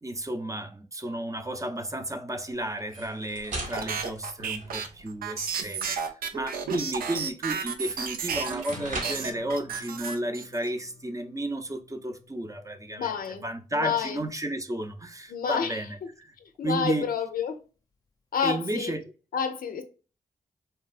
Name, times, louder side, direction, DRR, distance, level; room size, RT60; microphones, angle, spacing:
voice 1, 0.0-16.3 16.6-17.1 18.4-19.0, right 1 dB, 20° right, 0.5 m, -33 dB
sound 1, 2.8-5.2 7.6-7.7 8.2-9.4, right 2 dB, 65° right, 0.8 m, -39 dB
sound 2, 3.7-8.7 9.0-10.7, right 6 dB, 85° right, 0.4 m, -32 dB
Strum, 8.7-14.9, left 3 dB, 25° left, 0.6 m, -50 dB
voice 2, 13.0-13.4 13.7-14.2 15.3-15.8 16.4-17.6 18.3-18.9 19.3-19.8, left 7 dB, 80° left, 0.5 m, -29 dB
3.1 x 2.3 x 2.3 m
cardioid pair, 50°, 15 cm